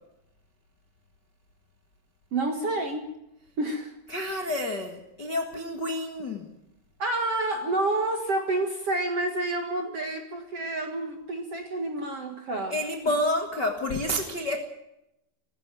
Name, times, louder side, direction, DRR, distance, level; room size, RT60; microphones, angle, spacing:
voice 1, 2.3-3.1 3.6-3.9 7.0-12.8, right 2 dB, 50° right, 4 dB, 1.9 m, -29 dB
voice 2, 4.1-6.5 12.7-14.6, left 1 dB, 60° left, 4 dB, 1.1 m, -29 dB
18.5 x 16.0 x 9.2 m, 0.86 s
omnidirectional pair, 5.1 m